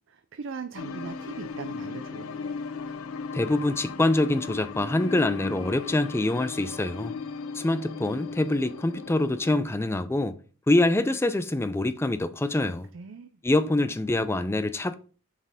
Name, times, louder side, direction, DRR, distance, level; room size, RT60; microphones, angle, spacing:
voice 1, 0.1-2.4 12.5-12.6 12.9-13.4, right 5 dB, 60° right, 0.4 m, -40 dB
sound 1, 0.8-9.6, left 4 dB, 85° left, 0.6 m, -37 dB
voice 2, 3.3-7.1 7.5-10.4 10.7-12.9 13.4-15.0, left 2 dB, 10° left, 0.3 m, -25 dB
7.1 x 4.4 x 3.5 m
head